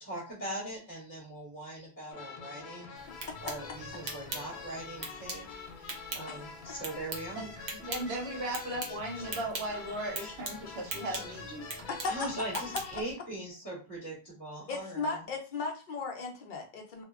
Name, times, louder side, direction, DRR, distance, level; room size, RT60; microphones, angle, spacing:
voice 1, 0.0-2.9 3.4-5.5 5.7-7.4 9.2-9.3 10.1-10.3 12.0-15.2, right 1 dB, 20° left, -5 dB, 1.0 m, -41 dB
sound 1, 2.1-13.0, left 5 dB, 90° left, 0.8 m, -46 dB
sound 2, 3.0-13.1, right 3 dB, 50° right, 0.7 m, -43 dB
voice 2, 7.4-11.6, right 1 dB, 85° right, -1 dB, 1.1 m, -37 dB
voice 3, 14.7-17.0, left 4 dB, 60° left, 2 dB, 0.7 m, -37 dB
2.7 x 2.2 x 2.3 m, 0.35 s
omnidirectional pair, 1.0 m